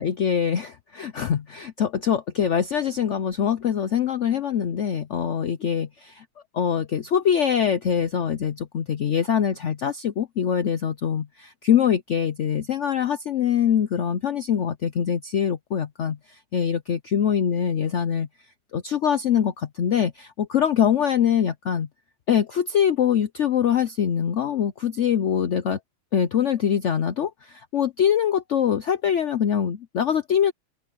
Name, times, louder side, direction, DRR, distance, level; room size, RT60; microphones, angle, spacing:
voice 1, 0.0-6.2 6.5-18.3 18.7-21.9 22.3-25.8 26.1-30.5, left 8 dB, 75° left, 0.6 m, -23 dB
open air
omnidirectional pair, 2.2 m